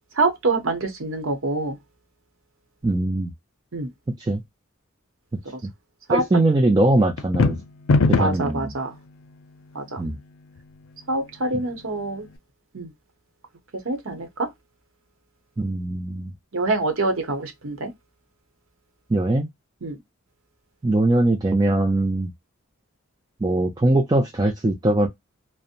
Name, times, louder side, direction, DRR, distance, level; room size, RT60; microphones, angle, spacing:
voice 1, 0.2-1.8 3.7-3.9 6.1-6.2 8.2-8.9 9.7-10.0 11.1-12.3 12.7-12.9 13.9-14.3 16.5-17.9 19.8-19.9, right 2 dB, 75° right, 0.9 m, -25 dB
voice 2, 2.8-3.3 4.2-4.4 6.1-7.6 8.1-8.8 10.0-10.2 15.6-16.3 19.1-19.5 20.8-22.3 23.4-25.1, right 2 dB, 20° right, 0.4 m, -21 dB
sound 1, 7.2-8.5, left 3 dB, 80° left, 0.5 m, -19 dB
2.8 x 2.1 x 2.5 m
head